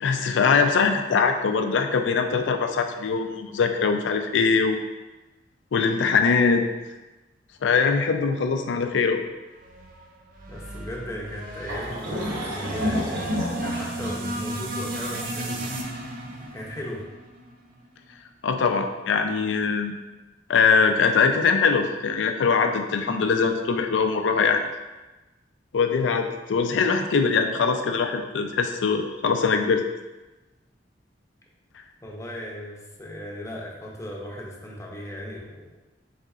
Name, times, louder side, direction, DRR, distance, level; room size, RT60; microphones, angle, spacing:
voice 1, 0.0-4.8 5.7-6.6 7.6-9.2 18.4-19.9 20.5-24.6 25.7-29.8, left 5 dB, 80° left, 6 dB, 0.4 m, -22 dB
sound 1, 9.5-17.9, right 1 dB, 50° right, 0.5 m, -35 dB
voice 2, 10.5-13.4 13.6-15.8 16.5-17.1 32.0-35.8, left 1 dB, 15° left, -2 dB, 0.6 m, -37 dB
sound 2, 11.7-16.9, equal, 70° right, 1.0 m, -31 dB
4.1 x 3.7 x 2.4 m, 1.1 s
head